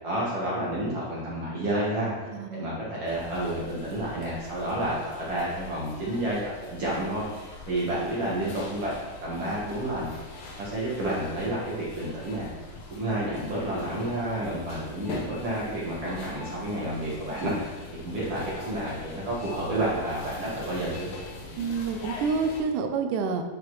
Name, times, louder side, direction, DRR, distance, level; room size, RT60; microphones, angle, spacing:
voice 1, 0.0-9.0 9.2-10.0 10.6-12.5 12.9-21.1, right 1 dB, 50° right, -7 dB, 2.1 m, -30 dB
voice 2, 2.3-2.8 21.6-23.4, right 5 dB, 75° right, 5 dB, 2.0 m, -28 dB
sound 1, 3.0-22.6, left 2 dB, 70° left, 2.8 m, -43 dB
10.5 x 5.1 x 3.1 m, 1.3 s
omnidirectional pair, 4.3 m